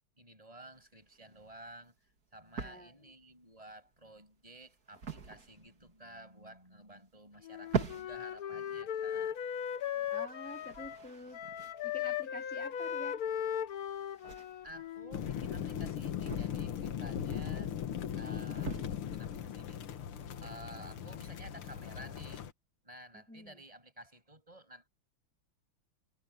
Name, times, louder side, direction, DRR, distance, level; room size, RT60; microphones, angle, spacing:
voice 1, 0.2-9.4 14.6-17.7 18.2-19.8 20.4-22.5 22.8-24.9, right 1 dB, 15° right, 7.3 m, -53 dB
sound 1, 0.7-20.5, right 6 dB, 45° right, 2.6 m, -45 dB
voice 2, 2.6-3.0 10.1-11.4 11.8-13.2 23.1-23.6, equal, 5° left, 4.0 m, -48 dB
Wind instrument woodwind instrument, 7.4-11.1 11.3-15.3, left 9 dB, 55° left, 1.2 m, -38 dB
sound 2, 15.1-22.5, left 9 dB, 85° left, 2.2 m, -38 dB
omnidirectional pair, 2.3 m